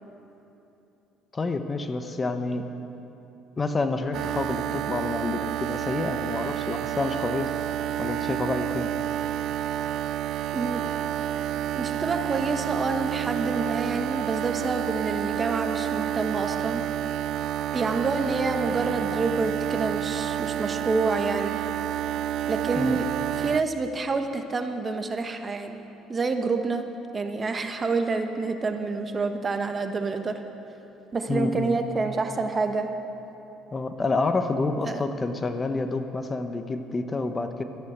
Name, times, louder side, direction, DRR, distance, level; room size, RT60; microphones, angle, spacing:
voice 1, 1.3-2.6 3.6-7.5 8.0-8.9 22.8-23.0 31.3-31.8 33.7-37.6, left 3 dB, 25° left, 8 dB, 0.9 m, -28 dB
sound 1, 4.1-23.6, right 11 dB, 65° right, 0.3 m, -29 dB
voice 2, 10.5-10.9 11.7-16.9 17.7-21.6 22.5-25.8 26.1-30.4 31.1-32.9 34.8-35.0, right 3 dB, 30° right, 6 dB, 1.2 m, -28 dB
13.0 x 11.0 x 8.0 m, 3.0 s
supercardioid pair, 95°, 0 cm